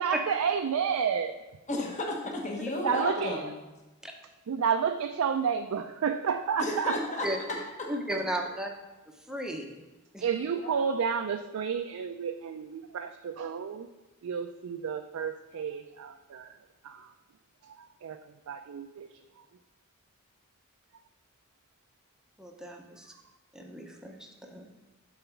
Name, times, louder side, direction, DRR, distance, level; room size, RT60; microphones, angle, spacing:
voice 1, 0.0-1.4 2.8-3.5 4.5-7.2 10.2-13.9 14.2-16.6 16.8-17.1 17.6-19.4, right 7 dB, 85° right, 6 dB, 0.4 m, -31 dB
voice 2, 1.7-3.5 6.6-7.9 10.6-10.8, left 1 dB, 35° left, 0 dB, 1.0 m, -33 dB
voice 3, 7.9-8.7 9.3-9.6 10.1-10.2 22.4-23.1 23.5-24.7, right 1 dB, 5° right, 2 dB, 0.6 m, -34 dB
7.0 x 4.0 x 5.9 m, 1.1 s
head